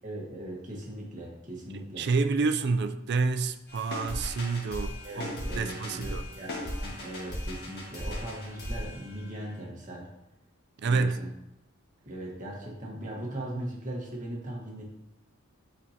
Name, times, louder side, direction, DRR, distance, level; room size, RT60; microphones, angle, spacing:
voice 1, 0.0-2.1 5.0-10.1 10.8-11.3 12.0-14.8, right 1 dB, 40° right, 1.3 m, -39 dB
voice 2, 2.0-6.3 10.8-11.3, right 4 dB, 55° right, 0.4 m, -28 dB
sound 1, 3.7-9.5, left 1 dB, 55° left, 1.4 m, -37 dB
8.4 x 4.4 x 2.8 m
head